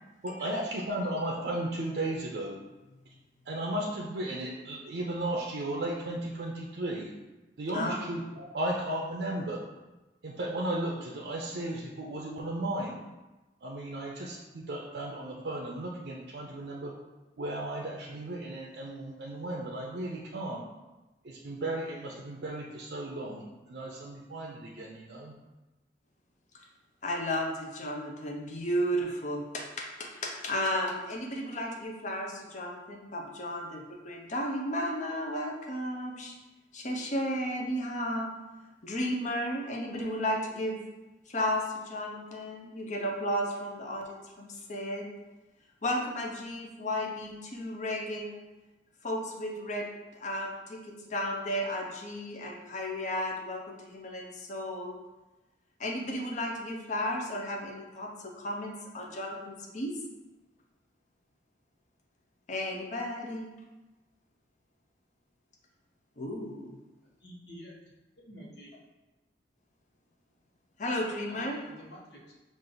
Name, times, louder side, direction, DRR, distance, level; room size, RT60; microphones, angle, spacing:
voice 1, 0.2-2.6 3.1-3.2 3.4-7.1 7.6-9.6 10.2-13.0 13.6-16.9 17.4-20.7 21.2-25.3, right 1 dB, 65° right, -2 dB, 0.5 m, -35 dB
voice 2, 27.0-36.3 36.7-38.3 38.8-40.8 41.3-45.1 45.8-48.4 49.0-49.9 50.1-54.9 55.8-59.9 62.5-63.5 66.2-66.7 70.8-71.6, equal, 45° left, 0 dB, 0.7 m, -34 dB
voice 3, 67.2-67.7 68.2-68.7 71.3-72.3, equal, 80° left, -3 dB, 1.2 m, -49 dB
5.0 x 2.5 x 3.8 m, 1.1 s
head